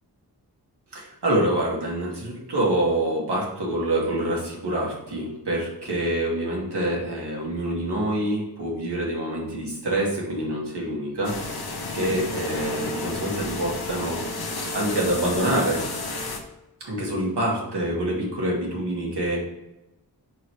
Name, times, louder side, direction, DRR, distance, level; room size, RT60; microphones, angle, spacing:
voice 1, 0.9-15.9 16.8-19.4, right 1 dB, 85° right, -4 dB, 2.1 m, -26 dB
sound 1, 11.2-16.4, left 2 dB, 70° left, 1.0 m, -31 dB
4.6 x 4.6 x 4.7 m, 0.96 s
wide cardioid pair, 75°, 39 cm